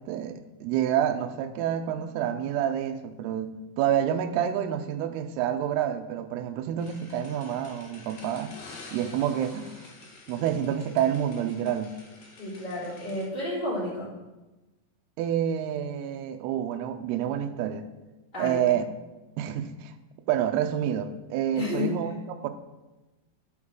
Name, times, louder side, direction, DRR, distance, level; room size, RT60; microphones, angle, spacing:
voice 1, 0.0-8.6 8.9-9.7 10.3-12.0 15.2-17.9 18.4-18.9 19.4-19.9 20.3-22.5, right 10 dB, 80° right, 7 dB, 2.5 m, -28 dB
sound 1, 6.8-13.3, left 3 dB, 75° left, 1.4 m, -49 dB
voice 2, 12.4-14.1 18.3-18.6 21.5-22.2, left 2 dB, 15° left, -7 dB, 2.7 m, -31 dB
10.5 x 6.3 x 3.7 m, 1.1 s
omnidirectional pair, 4.7 m